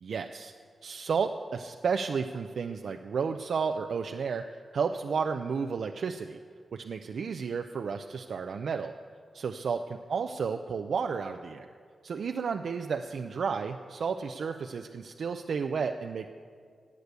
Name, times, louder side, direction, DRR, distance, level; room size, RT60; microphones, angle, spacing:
voice 1, 0.0-0.5 0.8-4.4 4.7-6.4 6.7-8.9 9.3-11.7 12.0-16.3, right 5 dB, 80° right, 5 dB, 0.5 m, -32 dB
15.0 x 8.4 x 8.1 m, 2.1 s
wide cardioid pair, 85°, 0 cm